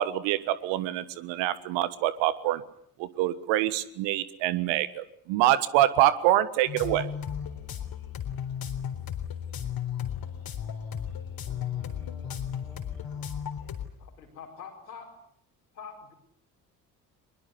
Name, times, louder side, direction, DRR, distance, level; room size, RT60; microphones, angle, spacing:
voice 1, 0.0-2.6 3.0-7.1, right 14 dB, 60° right, 16 dB, 1.5 m, -25 dB
sound 1, 6.7-13.9, left 8 dB, 45° left, 3.8 m, -35 dB
voice 2, 11.5-13.3, equal, ahead, 6 dB, 5.1 m, -54 dB
voice 3, 14.0-15.2 15.7-16.1, left 6 dB, 80° left, 3 dB, 5.0 m, -45 dB
22.5 x 22.0 x 9.6 m, 0.67 s
figure-of-eight pair, 50°, 49 cm